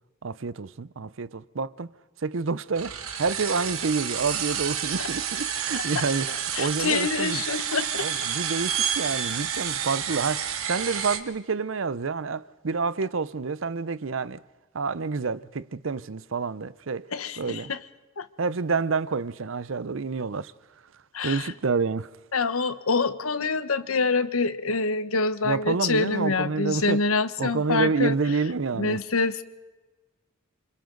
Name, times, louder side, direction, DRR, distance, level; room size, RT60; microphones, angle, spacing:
voice 1, 0.2-1.9 2.2-7.4 8.0-14.4 14.7-17.1 17.4-17.7 18.4-20.5 21.2-22.1 25.4-27.0 27.4-29.0, right 4 dB, 65° right, 0.6 m, -28 dB
sound 1, 2.8-11.2, right 8 dB, 90° right, 1.9 m, -29 dB
voice 2, 6.5-8.1 17.1-17.8 18.2-18.3 21.1-21.5 22.3-28.2 28.7-29.4, left 4 dB, 90° left, 1.1 m, -26 dB
29.0 x 27.0 x 3.9 m
head